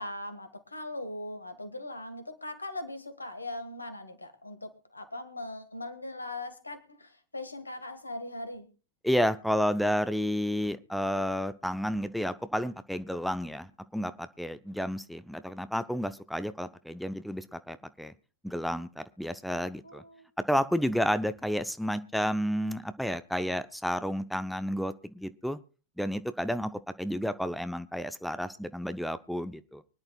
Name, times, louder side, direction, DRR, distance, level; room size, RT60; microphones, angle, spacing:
voice 1, 0.0-8.7 19.8-20.3, left 2 dB, 80° left, 11 dB, 1.7 m, -40 dB
voice 2, 9.0-18.1 18.4-20.0 20.5-25.6 26.0-29.8, equal, ahead, 13 dB, 0.6 m, -31 dB
24.5 x 10.5 x 2.3 m, 0.34 s
figure-of-eight pair, 90°, 0 cm